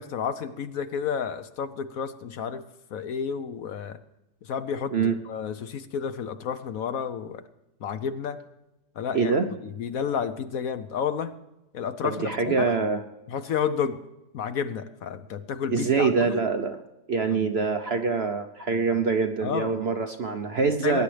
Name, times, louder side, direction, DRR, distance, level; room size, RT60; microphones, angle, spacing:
voice 1, 0.0-2.6 2.9-4.0 4.4-5.0 5.2-7.4 7.8-8.4 9.0-9.3 9.6-11.4 11.7-12.8 13.3-14.0 14.3-16.4 19.4-19.8 20.6-21.0, left 7 dB, 65° left, 11 dB, 1.0 m, -31 dB
voice 2, 9.1-9.5 12.0-13.0 15.7-16.8 17.1-21.0, right 5 dB, 55° right, 6 dB, 0.8 m, -24 dB
19.5 x 10.0 x 3.3 m, 0.92 s
omnidirectional pair, 1.8 m